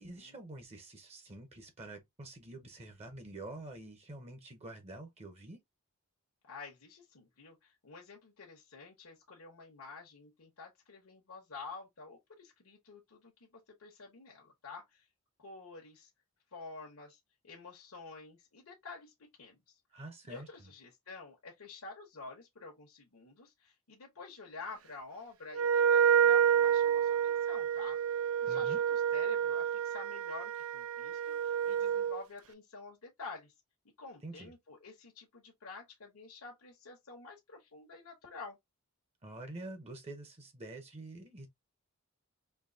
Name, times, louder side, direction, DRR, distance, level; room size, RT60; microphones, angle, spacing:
voice 1, 0.0-5.6 19.9-20.5 28.5-28.8 34.2-34.5 39.2-41.5, right 2 dB, 30° right, 0.8 m, -47 dB
voice 2, 6.4-15.1 15.4-16.1 16.5-19.8 20.2-28.0 28.4-33.5 34.0-38.6, left 3 dB, 75° left, 1.1 m, -49 dB
Wind instrument woodwind instrument, 25.5-32.2, right 8 dB, 65° right, 0.5 m, -29 dB
4.5 x 2.8 x 2.7 m
head